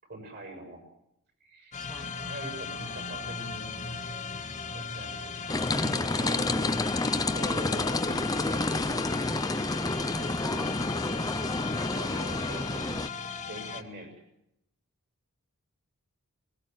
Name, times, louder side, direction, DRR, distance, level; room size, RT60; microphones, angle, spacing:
voice 1, 0.0-0.8 1.4-1.8 2.2-3.9 4.7-6.8 7.3-9.0 11.8-12.9 13.5-14.1, right 1 dB, 50° right, 6 dB, 7.2 m, -43 dB
sound 1, 1.7-13.8, left 5 dB, 35° left, 1.6 m, -37 dB
voice 2, 1.8-2.2 10.1-11.4 12.1-12.6, left 1 dB, ahead, 3 dB, 1.9 m, -44 dB
sound 2, 5.5-13.1, left 2 dB, 15° left, 0.8 m, -29 dB
20.5 x 19.5 x 9.4 m, 0.80 s
head